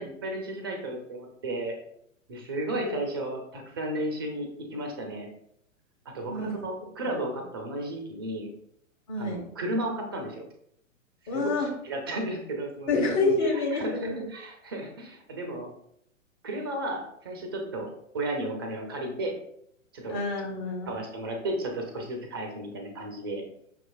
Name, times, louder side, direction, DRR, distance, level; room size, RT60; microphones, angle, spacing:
voice 1, 0.0-1.8 2.3-5.3 6.1-8.5 9.2-10.5 11.2-13.0 13.4-15.7 16.4-17.9 18.1-19.3 19.9-20.2 20.9-23.4, right 1 dB, 20° right, 2 dB, 0.3 m, -34 dB
voice 2, 9.1-9.5 11.3-11.7 12.9-14.3 20.1-20.9, left 3 dB, 35° left, 1 dB, 1.1 m, -28 dB
5.6 x 3.1 x 2.3 m, 0.74 s
hypercardioid pair, 125°, 40 cm